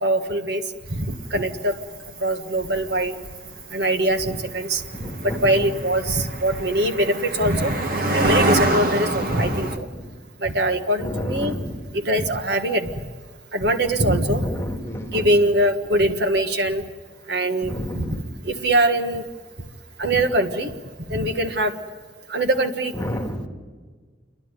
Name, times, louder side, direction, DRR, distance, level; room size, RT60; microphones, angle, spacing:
voice 1, 0.0-0.6 0.9-1.7 2.2-3.2 3.7-4.8 5.2-7.7 8.1-9.9 10.4-11.5 11.9-13.0 13.5-14.5 15.1-16.8 17.3-18.1 18.4-19.2 20.0-20.7 21.1-21.7 22.3-22.9, right 1 dB, 65° right, 5 dB, 1.6 m, -22 dB
Cricket, 0.9-9.8, right 1 dB, 50° right, 1.8 m, -26 dB
voice 2, 4.9-5.7 9.2-10.1 11.0-11.8 14.4-15.3 17.6-18.3 21.1-21.2 22.9-23.5, equal, 15° left, 1 dB, 2.1 m, -30 dB
30.0 x 11.5 x 9.8 m, 1.5 s
head